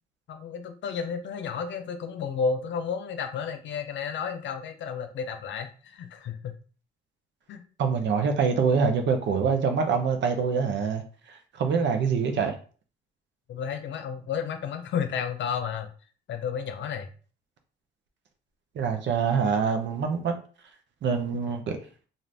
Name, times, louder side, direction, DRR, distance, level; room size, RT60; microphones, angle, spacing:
voice 1, 0.3-6.5 7.5-7.6 8.0-8.3 13.5-15.9 16.3-17.1, left 6 dB, 70° left, 7 dB, 0.6 m, -32 dB
voice 2, 7.8-12.5 18.8-20.3 21.0-21.8, right 5 dB, 65° right, 5 dB, 0.7 m, -25 dB
2.5 x 2.5 x 3.3 m, 0.39 s
cardioid pair, 90°, 20 cm